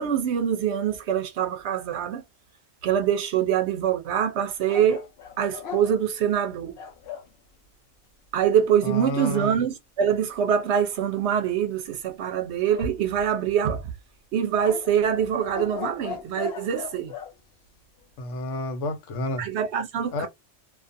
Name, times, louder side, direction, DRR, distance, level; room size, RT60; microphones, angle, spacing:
voice 1, 0.0-2.2 2.8-5.1 5.4-6.8 8.3-13.8 14.3-17.1 19.4-20.3, right 9 dB, 70° right, 0.8 m, -24 dB
sound 1, 4.7-7.3 12.7-13.6 14.6-17.3, left 8 dB, 60° left, 0.8 m, -38 dB
voice 2, 8.8-9.5 18.2-19.4 20.1-20.3, left 1 dB, 80° left, 1.1 m, -30 dB
2.5 x 2.3 x 2.5 m
omnidirectional pair, 1.2 m